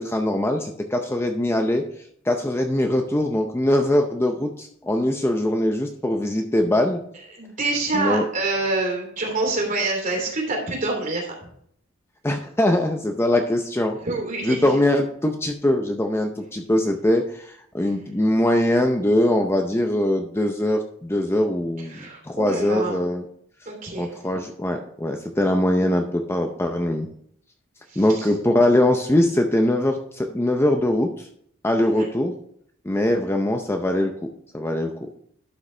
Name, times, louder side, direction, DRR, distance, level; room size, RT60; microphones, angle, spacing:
voice 1, 0.0-1.9 2.3-7.0 7.9-8.2 12.2-14.0 14.4-23.2 24.0-27.1 28.0-31.3 31.6-32.3 32.8-34.3 34.5-35.1, left 1 dB, 10° left, 4 dB, 0.5 m, -22 dB
voice 2, 7.4-11.4 14.0-14.7 21.9-23.0 23.6-24.2 27.9-28.3 31.8-32.1, right 2 dB, 40° right, 0 dB, 3.0 m, -26 dB
11.5 x 6.3 x 3.2 m, 0.67 s
head